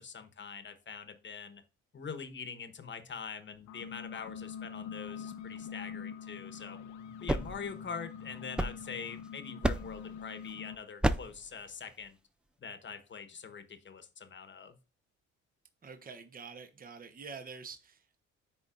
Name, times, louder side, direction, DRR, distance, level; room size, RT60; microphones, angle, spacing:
voice 1, 0.0-1.6 1.9-6.8 7.2-12.2 12.6-14.8, left 6 dB, 40° left, 1.2 m, -44 dB
sound 1, 3.5-10.8, left 7 dB, 70° left, 0.9 m, -45 dB
sound 2, 7.0-9.2 9.6-10.1 11.0-11.5, right 1 dB, 5° right, 0.3 m, -32 dB
voice 2, 15.8-18.2, right 5 dB, 30° right, 0.9 m, -47 dB
10.0 x 4.1 x 2.5 m
cardioid pair, 90°, 30 cm